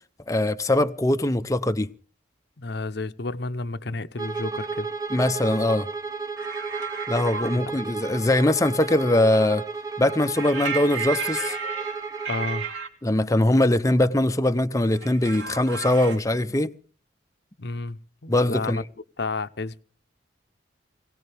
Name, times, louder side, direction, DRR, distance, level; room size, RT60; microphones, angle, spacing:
voice 1, 0.3-1.9 5.1-5.9 7.1-9.6 10.0-11.6 13.0-16.7 18.3-18.8, left 1 dB, 15° left, 0.7 m, -22 dB
voice 2, 2.6-4.9 7.5-7.7 12.3-12.7 17.6-18.8 19.2-19.8, left 3 dB, 55° left, 0.8 m, -31 dB
Bowed string instrument, 4.1-12.7, right 4 dB, 15° right, 0.8 m, -33 dB
sound 1, 6.4-7.6 10.3-12.9 14.9-16.2, right 6 dB, 70° right, 3.2 m, -33 dB
22.0 x 17.5 x 3.4 m
head